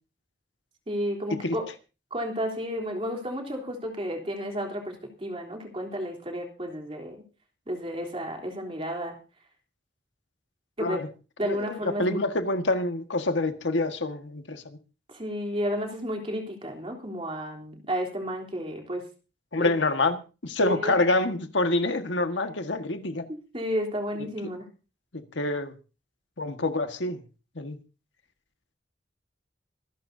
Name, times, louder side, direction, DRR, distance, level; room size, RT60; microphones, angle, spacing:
voice 1, 0.9-1.7 2.1-7.2 7.7-9.2 10.8-11.0 11.4-12.2 15.1-19.1 19.6-19.7 20.6-21.0 23.3-24.7, equal, 30° right, 2 dB, 3.4 m, -32 dB
voice 2, 11.4-14.8 19.5-20.2 20.4-23.3 25.1-25.7 26.4-27.2 27.6-27.8, left 2 dB, 85° left, 7 dB, 1.6 m, -27 dB
25.5 x 11.5 x 2.7 m, 0.33 s
head